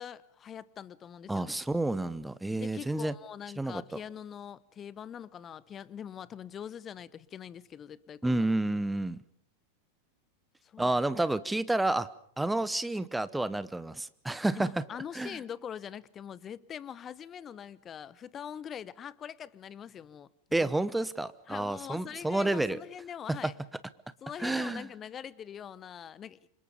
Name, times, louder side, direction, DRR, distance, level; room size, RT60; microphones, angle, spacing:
voice 1, 0.0-1.6 2.5-8.5 10.6-10.9 14.6-20.3 20.6-20.7 21.5-23.5 24.2-26.5, left 8 dB, 25° left, 0.9 m, -43 dB
voice 2, 1.3-3.1 3.6-3.8 8.2-9.2 10.8-12.1 12.4-14.8 15.1-15.4 20.5-22.8 24.4-24.9, right 2 dB, 5° right, 1.0 m, -30 dB
29.0 x 26.0 x 5.3 m
figure-of-eight pair, 90°, 0 cm